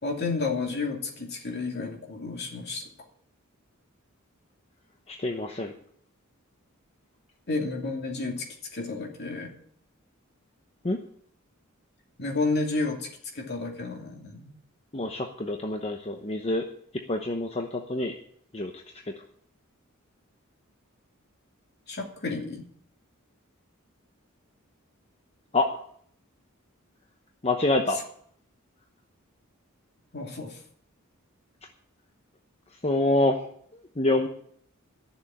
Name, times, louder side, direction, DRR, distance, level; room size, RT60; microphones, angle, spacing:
voice 1, 0.0-2.9 7.5-9.5 12.2-13.1 13.3-14.5 21.9-22.6 30.1-30.6, left 3 dB, 50° left, 1 dB, 2.7 m, -31 dB
voice 2, 5.1-5.7 10.8-11.0 14.9-16.6 17.1-18.1 18.5-18.7 25.5-25.8 27.4-28.0 32.8-33.4 33.7-34.3, left 2 dB, 30° left, 3 dB, 0.9 m, -26 dB
12.5 x 7.2 x 8.7 m, 0.64 s
head